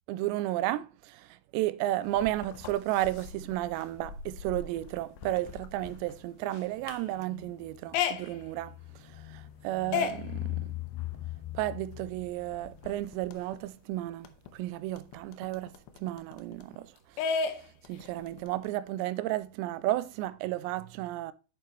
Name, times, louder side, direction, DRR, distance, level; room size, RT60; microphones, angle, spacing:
voice 1, 0.1-10.7 11.5-15.7 16.0-17.4 17.8-21.3, right 15 dB, 85° right, 2.8 m, -33 dB
sound 1, 2.0-13.6 13.9-14.0 14.2-16.8 17.2-18.7, left 7 dB, 85° left, 3.0 m, -37 dB
8.4 x 6.7 x 3.1 m
omnidirectional pair, 5.0 m